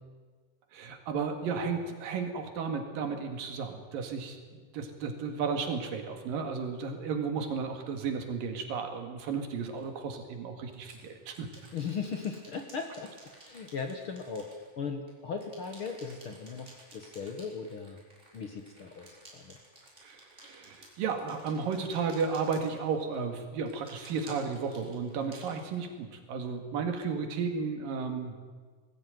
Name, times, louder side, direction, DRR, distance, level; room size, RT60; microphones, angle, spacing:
voice 1, 0.7-4.4 4.6-11.5 20.0-28.4, right 5 dB, 85° right, 5 dB, 3.8 m, -33 dB
sound 1, 9.8-9.9 10.7-15.1 15.4-23.2 23.7-26.1, right 1 dB, 20° right, 5.1 m, -54 dB
voice 2, 11.7-13.1 13.5-14.5 14.8-18.0 18.3-19.6, left 5 dB, 55° left, 5 dB, 1.6 m, -38 dB
20.5 x 15.0 x 9.3 m, 1.5 s
omnidirectional pair, 3.9 m